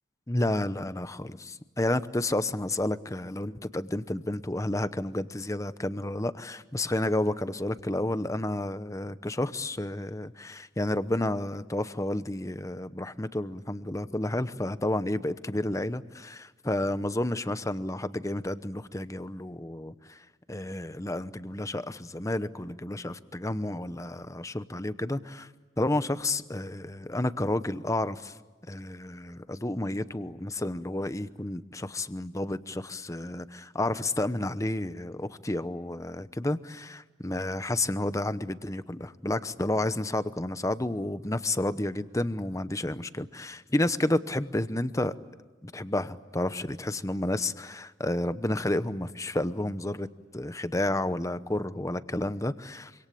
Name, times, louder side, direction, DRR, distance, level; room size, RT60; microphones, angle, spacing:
voice 1, 0.3-25.5 25.8-28.3 28.7-45.1 45.6-50.1 50.3-52.9, left 1 dB, 15° left, 12 dB, 0.9 m, -31 dB
26.5 x 26.0 x 8.6 m, 1.3 s
head